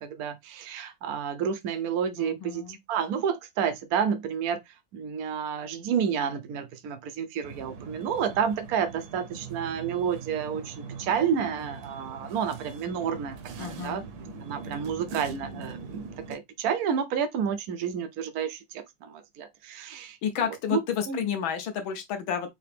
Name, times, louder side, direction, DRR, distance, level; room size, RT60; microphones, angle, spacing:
voice 1, 0.0-4.6 4.9-14.0 14.4-20.2 20.7-20.8 21.1-21.2, right 7 dB, 90° right, 0.8 m, -30 dB
voice 2, 2.2-2.8 13.6-14.1 20.2-22.5, left 8 dB, 70° left, 1.5 m, -31 dB
sound 1, 7.4-16.4, right 4 dB, 65° right, 1.0 m, -42 dB
4.8 x 2.9 x 3.3 m
omnidirectional pair, 2.4 m